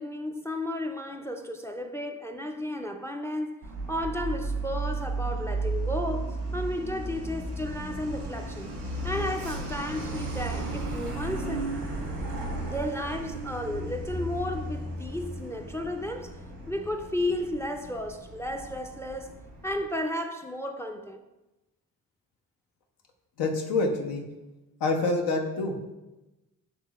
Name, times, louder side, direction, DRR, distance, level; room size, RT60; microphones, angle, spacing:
voice 1, 0.0-8.7 9.0-11.7 12.6-16.3 16.7-21.2, left 1 dB, 10° left, 0.3 m, -33 dB
Truck, 3.6-19.8, right 2 dB, 90° right, 1.0 m, -34 dB
voice 2, 23.4-24.2 24.8-25.9, left 3 dB, 90° left, 0.6 m, -27 dB
6.7 x 2.9 x 2.3 m
supercardioid pair, 45°, 38 cm